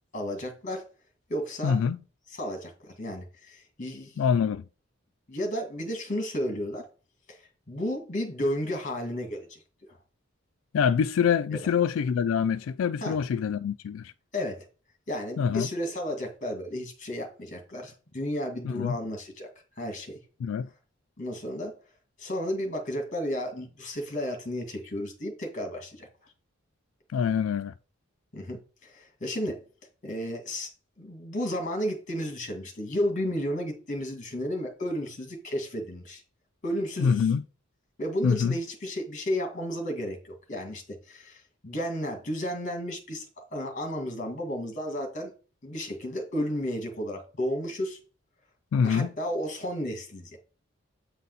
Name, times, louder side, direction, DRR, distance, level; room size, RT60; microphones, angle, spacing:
voice 1, 0.1-0.9 1.3-1.8 2.3-4.2 5.3-6.9 7.3-7.4 7.7-9.6 11.5-11.6 13.0-13.2 14.3-14.7 15.1-19.5 19.8-20.2 21.2-21.7 22.2-26.1 28.3-29.6 30.0-30.7 31.0-36.2 36.6-37.3 38.0-45.3 45.6-48.0 48.8-50.4, equal, 40° left, 2.0 m, -33 dB
voice 2, 1.6-2.0 4.2-4.6 10.7-14.1 15.4-15.7 18.6-19.0 20.4-20.7 27.1-27.7 37.0-37.4 38.2-38.6 48.7-49.1, left 7 dB, 85° left, 0.3 m, -25 dB
8.3 x 4.1 x 4.0 m
head